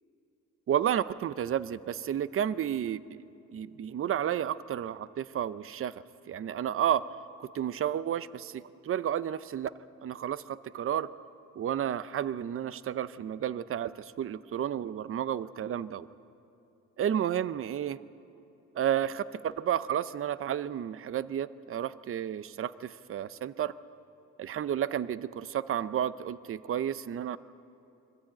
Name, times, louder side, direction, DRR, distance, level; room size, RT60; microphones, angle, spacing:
voice 1, 0.7-3.0 3.5-7.1 7.4-9.7 10.0-11.1 11.6-16.1 17.0-18.0 18.7-23.7 24.4-27.4, right 10 dB, 45° right, 16 dB, 0.6 m, -31 dB
23.5 x 14.5 x 8.9 m, 2.9 s
cardioid pair, 90°, 30 cm